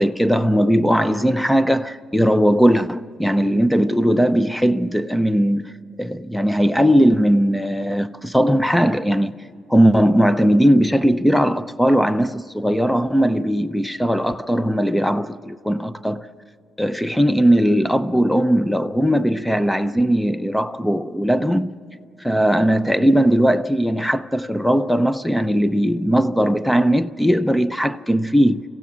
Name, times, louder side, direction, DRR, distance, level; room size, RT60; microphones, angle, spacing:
voice 1, 0.0-5.7 6.0-9.3 9.7-16.3 16.8-21.7 22.2-28.6, equal, 5° left, 0.5 m, -18 dB
27.5 x 15.5 x 6.2 m
cardioid pair, 90°, 0 cm